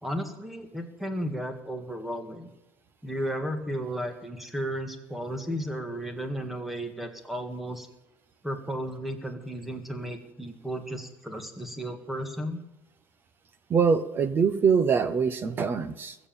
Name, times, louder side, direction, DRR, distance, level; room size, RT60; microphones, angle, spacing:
voice 1, 0.0-2.5 3.0-7.9 8.4-12.6, equal, ahead, 6 dB, 1.9 m, -34 dB
voice 2, 13.7-16.2, right 6 dB, 25° right, 13 dB, 1.0 m, -23 dB
21.0 x 7.4 x 8.9 m, 0.98 s
cardioid pair, 165°, 8 cm